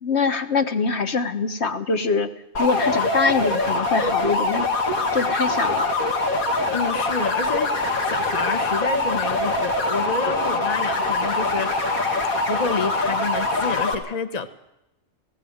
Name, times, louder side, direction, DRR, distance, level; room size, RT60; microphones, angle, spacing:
voice 1, 0.0-2.3 2.6-4.7 5.1-5.9, left 4 dB, 50° left, 9 dB, 1.7 m, -23 dB
sound 1, 2.6-13.9, left 2 dB, 75° left, 3.1 m, -23 dB
voice 2, 6.7-12.0 12.5-14.5, left 4 dB, 30° left, 9 dB, 1.3 m, -29 dB
18.0 x 16.5 x 8.8 m, 0.88 s
omnidirectional pair, 1.5 m